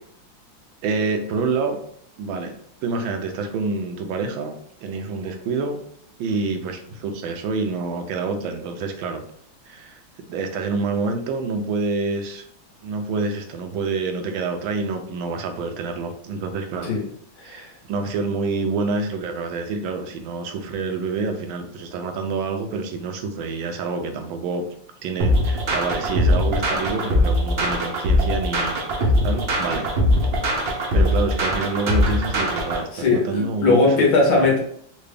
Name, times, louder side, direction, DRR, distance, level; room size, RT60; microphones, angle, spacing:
voice 1, 0.8-1.8 2.2-2.5 2.8-5.8 6.2-9.2 9.7-10.0 10.3-12.4 12.8-16.9 17.4-24.7 25.0-29.9 30.9-34.0 34.4-34.5, right 4 dB, 85° right, 5 dB, 1.3 m, -27 dB
sound 1, 25.2-32.8, left 1 dB, 60° right, 0.6 m, -21 dB
voice 2, 32.9-34.6, left 3 dB, 60° left, -1 dB, 1.1 m, -19 dB
3.8 x 2.3 x 3.3 m, 0.65 s
omnidirectional pair, 2.1 m